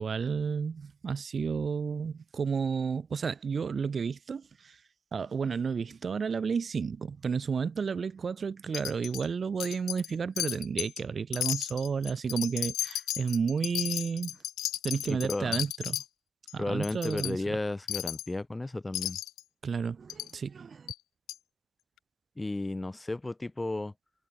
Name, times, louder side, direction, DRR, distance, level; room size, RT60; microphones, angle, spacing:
voice 1, 0.0-4.8 5.1-14.4 14.8-16.0 16.5-17.6 19.6-20.9, right 6 dB, 40° right, 0.7 m, -32 dB
Wind chime, 8.7-9.3 9.6-10.1 10.4-11.0 11.3-16.0 16.5-16.6 16.8-17.3 17.9-18.3 18.9-19.4 20.1-20.3 20.9-21.0 21.3-21.4, left 14 dB, 85° left, 0.4 m, -34 dB
voice 2, 15.1-15.6 16.6-19.2 22.4-23.9, left 2 dB, 15° left, 2.9 m, -33 dB
cardioid pair, 90°, 0 cm